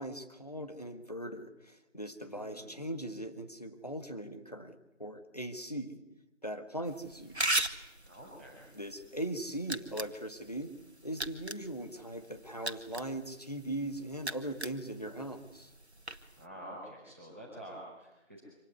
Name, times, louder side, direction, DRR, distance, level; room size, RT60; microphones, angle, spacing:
voice 1, 0.0-6.0 6.4-7.6 8.7-10.7 11.0-15.7, right 1 dB, 30° left, 7 dB, 1.7 m, -40 dB
voice 2, 2.2-2.8 8.0-8.6 16.4-18.4, right 1 dB, 10° right, -7 dB, 4.5 m, -48 dB
sound 1, 6.9-16.4, right 1 dB, 60° right, 1.9 m, -40 dB
26.5 x 18.0 x 9.6 m, 0.99 s
figure-of-eight pair, 180°, 37 cm